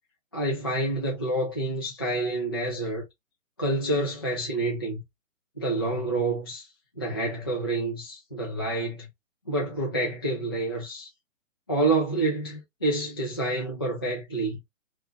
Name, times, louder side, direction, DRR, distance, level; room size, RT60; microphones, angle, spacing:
voice 1, 0.3-3.0 3.6-5.0 5.6-6.7 7.0-9.0 9.5-11.1 11.7-14.6, right 2 dB, 20° left, 0.3 m, -28 dB
2.9 x 2.3 x 3.0 m
hypercardioid pair, 140°, 40 cm